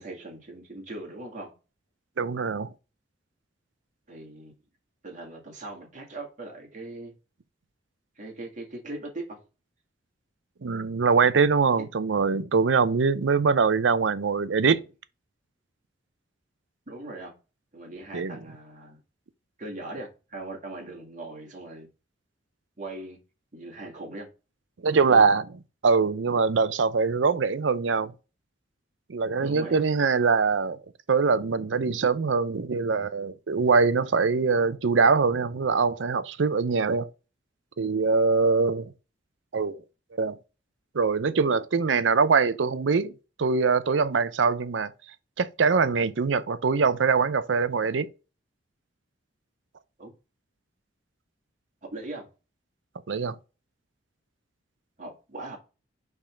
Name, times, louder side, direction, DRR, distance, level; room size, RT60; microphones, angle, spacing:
voice 1, 0.0-1.6 4.1-4.6 5.0-7.1 8.2-9.4 11.8-11.9 16.9-17.3 17.7-19.0 19.6-21.9 22.8-23.2 23.5-24.3 24.9-25.3 29.4-30.3 50.0-50.1 51.9-52.3 55.0-55.6, right 2 dB, 45° right, 2.1 m, -40 dB
voice 2, 2.2-2.7 10.6-14.8 18.1-18.4 24.8-25.4 25.8-28.1 29.1-30.8 31.1-37.1 37.8-38.9 39.5-39.8 40.2-40.4 40.9-43.1 43.4-44.9 45.4-48.1 53.1-53.4, right 5 dB, 80° right, 0.6 m, -23 dB
5.3 x 3.6 x 4.9 m
head